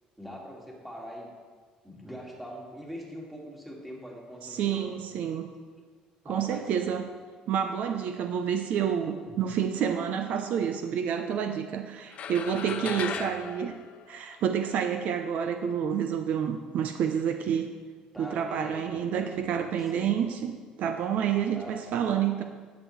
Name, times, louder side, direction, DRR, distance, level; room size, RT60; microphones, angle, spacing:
voice 1, 0.2-1.3 1.8-5.0 6.2-6.9 9.3-9.5 12.6-13.7 18.1-20.2 21.5-22.0, equal, 5° right, -2 dB, 2.1 m, -43 dB
voice 2, 4.4-5.5 6.3-7.1 7.5-13.8 14.1-17.7 18.2-22.4, right 8 dB, 60° right, 7 dB, 0.5 m, -29 dB
sound 1, 12.1-14.7, left 7 dB, 50° left, 0.5 m, -37 dB
11.0 x 8.4 x 3.2 m, 1.5 s
cardioid pair, 115°, 3 cm